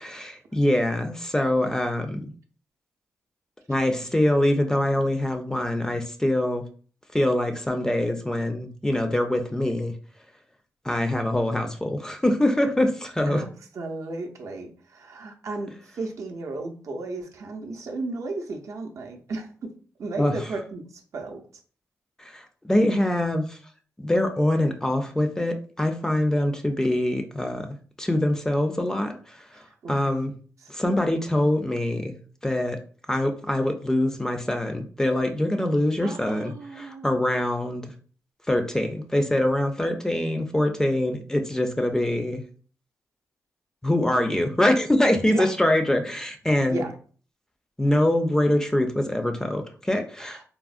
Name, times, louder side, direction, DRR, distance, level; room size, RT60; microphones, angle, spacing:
voice 1, 0.0-2.3 3.7-6.6 7.1-9.9 10.8-13.4 20.2-20.3 22.2-23.6 24.0-30.3 30.7-32.1 32.4-32.8 33.1-37.8 38.5-42.4 43.8-46.8 47.8-50.4, left 1 dB, 10° left, 5 dB, 0.4 m, -24 dB
voice 2, 13.7-19.7 20.0-20.8 21.1-21.5 29.5-30.3 30.6-30.7 36.0-37.2 45.3-45.5 46.7-46.9 50.3-50.4, right 3 dB, 65° right, 3 dB, 0.5 m, -34 dB
3.5 x 2.0 x 2.4 m, 0.42 s
wide cardioid pair, 105°, 6 cm